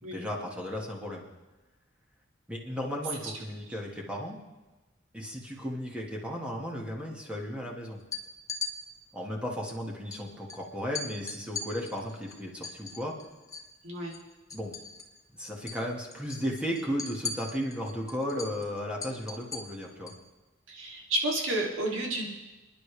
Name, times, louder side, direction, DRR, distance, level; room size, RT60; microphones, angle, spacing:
voice 1, 0.1-1.3 2.5-4.4 5.1-8.0 9.1-13.2 14.5-14.7 15.3-20.1, equal, 5° right, -2 dB, 2.0 m, -35 dB
sound 1, 8.0-8.7 10.1-10.2 10.5-10.6 11.0-13.7 14.0-15.2 15.5-15.8 16.1-20.2, left 4 dB, 15° left, 1.2 m, -39 dB
voice 2, 13.8-14.1 20.7-22.3, right 1 dB, 85° right, -2 dB, 3.1 m, -31 dB
29.0 x 10.5 x 3.5 m, 1.1 s
head